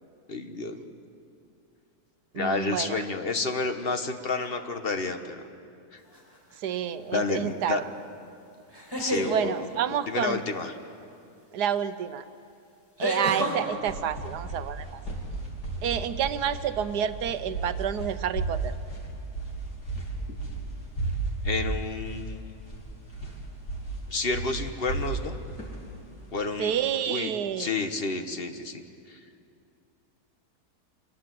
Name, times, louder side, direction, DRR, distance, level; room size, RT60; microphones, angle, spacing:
voice 1, 0.3-0.8 2.3-5.4 5.9-6.0 7.1-7.8 9.0-9.5 10.1-10.7 21.4-22.5 24.1-25.4 26.3-26.7 27.1-27.3 27.6-28.8 29.1-29.2, left 3 dB, 40° left, 6 dB, 1.4 m, -30 dB
voice 2, 2.3-3.0 6.6-7.9 9.3-10.4 11.5-12.2 13.0-15.0 15.8-18.7 26.6-27.7, right 9 dB, 90° right, 12 dB, 1.4 m, -29 dB
sound 1, 6.1-6.6 8.7-9.3 11.6-11.7 13.0-13.6, equal, 15° left, 4.6 m, -29 dB
sound 2, 13.6-26.8, right 3 dB, 75° left, 3.9 m, -34 dB
26.0 x 21.5 x 7.7 m, 2.5 s
omnidirectional pair, 1.7 m